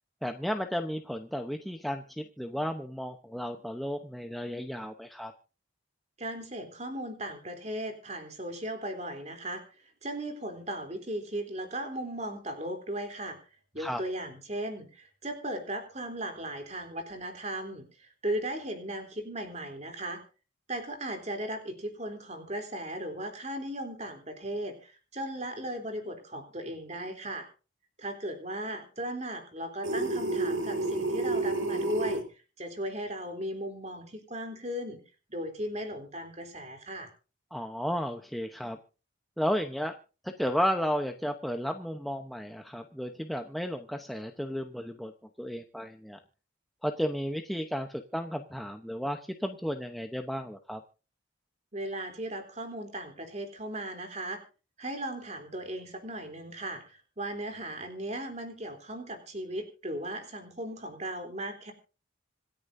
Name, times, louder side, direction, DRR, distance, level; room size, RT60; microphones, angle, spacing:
voice 1, 0.2-5.3 13.8-14.0 37.5-38.8 39.4-39.9 40.2-45.1 45.4-46.2 46.8-50.8, equal, ahead, 4 dB, 0.8 m, -33 dB
voice 2, 6.2-13.4 13.7-20.2 20.7-27.5 28.0-32.2 32.6-35.0 35.3-37.1 51.7-54.4 54.8-61.7, right 1 dB, 35° right, 5 dB, 3.3 m, -37 dB
sound 1, 29.8-32.2, right 2 dB, 70° right, 2.3 m, -30 dB
26.5 x 10.0 x 2.7 m, 0.35 s
head